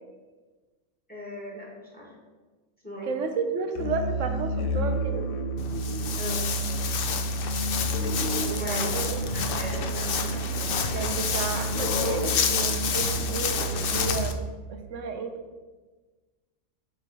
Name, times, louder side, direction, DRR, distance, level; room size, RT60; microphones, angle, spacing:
voice 1, 1.1-2.1 2.8-3.1 6.1-6.5 8.6-9.0 9.3-10.7, left 1 dB, 5° left, -4 dB, 1.7 m, -39 dB
voice 2, 3.0-5.3 8.0-9.3 10.9-14.4 14.7-15.4, right 5 dB, 65° right, 6 dB, 1.0 m, -32 dB
Musical instrument, 3.7-14.5, right 2 dB, 75° left, 1.2 m, -30 dB
Walk footsteps, 5.6-14.3, left 7 dB, 60° left, 0.6 m, -30 dB
8.0 x 3.4 x 5.5 m, 1.3 s
omnidirectional pair, 1.5 m